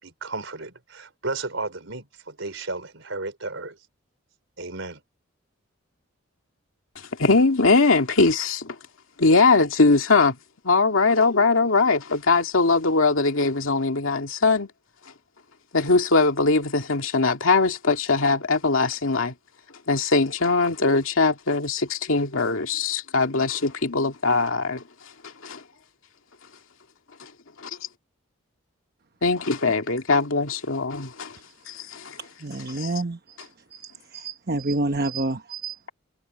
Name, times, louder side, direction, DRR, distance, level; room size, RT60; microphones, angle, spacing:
voice 1, 0.0-3.8 4.6-5.0, right 3 dB, 70° right, 4.4 m, -33 dB
voice 2, 7.0-8.8 9.2-10.4 10.6-14.7 15.7-19.3 19.9-24.8 25.4-25.6 27.2-27.3 27.6-27.8 29.2-31.4 31.7-32.2 32.7-32.9, left 3 dB, 90° left, 2.2 m, -21 dB
voice 3, 32.2-35.9, right 2 dB, 50° right, 1.0 m, -29 dB
head